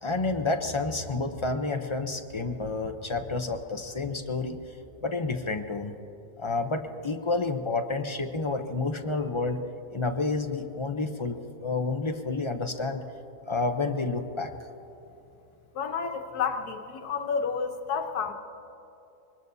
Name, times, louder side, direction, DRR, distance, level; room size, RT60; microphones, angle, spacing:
voice 1, 0.0-4.6 5.0-5.9 6.4-9.6 9.9-13.0 13.5-14.5, left 3 dB, 40° left, 5 dB, 0.4 m, -29 dB
voice 2, 15.7-18.3, left 6 dB, 90° left, 6 dB, 1.4 m, -30 dB
24.0 x 20.5 x 2.7 m, 2.9 s
omnidirectional pair, 1.6 m